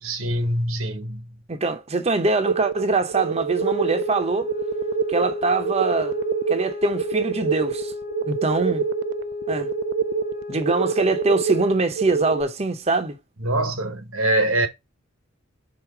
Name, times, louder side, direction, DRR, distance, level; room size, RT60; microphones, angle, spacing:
voice 1, 0.0-1.4 13.4-14.7, right 1 dB, 85° right, 1.3 m, -24 dB
voice 2, 1.5-4.5 5.1-6.2 6.5-7.9 8.3-8.8 9.5-9.7 10.5-13.2, right 3 dB, 30° right, 0.7 m, -23 dB
sound 1, 2.4-12.4, right 6 dB, 60° right, 0.4 m, -26 dB
sound 2, 3.6-11.9, left 3 dB, 20° left, 1.1 m, -33 dB
4.9 x 4.1 x 4.7 m
head